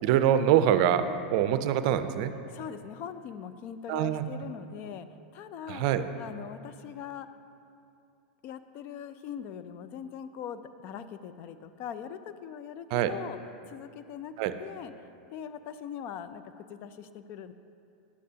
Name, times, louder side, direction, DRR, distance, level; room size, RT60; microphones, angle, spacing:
voice 1, 0.0-2.3 3.9-4.2 5.7-6.1 12.9-13.1 14.4-14.5, right 10 dB, 55° right, 11 dB, 0.5 m, -24 dB
voice 2, 2.5-5.1 5.3-5.9 6.2-7.3 8.4-13.4 13.7-17.5, left 8 dB, 45° left, 11 dB, 0.4 m, -41 dB
11.0 x 8.3 x 2.8 m, 2.5 s
hypercardioid pair, 105°, 5 cm